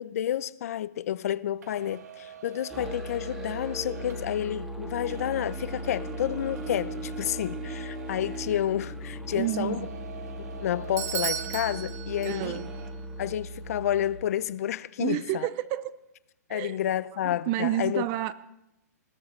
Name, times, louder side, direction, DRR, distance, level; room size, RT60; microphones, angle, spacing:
voice 1, 0.0-9.9 10.4-12.6 13.2-15.5 16.5-18.1, left 11 dB, 60° left, 0.6 m, -30 dB
sound 1, 1.6-9.1 9.3-12.1 12.4-12.9, right 7 dB, 70° right, 2.1 m, -47 dB
Musical instrument, 2.7-14.3, right 1 dB, 5° right, 1.8 m, -38 dB
voice 2, 9.3-9.9 12.2-12.7 15.0-16.0 16.5-16.8 17.2-18.3, right 14 dB, 30° right, 0.5 m, -30 dB
Bell / Doorbell, 11.0-12.8, right 10 dB, 55° right, 1.3 m, -34 dB
20.5 x 15.0 x 4.5 m
hypercardioid pair, 145°, 9 cm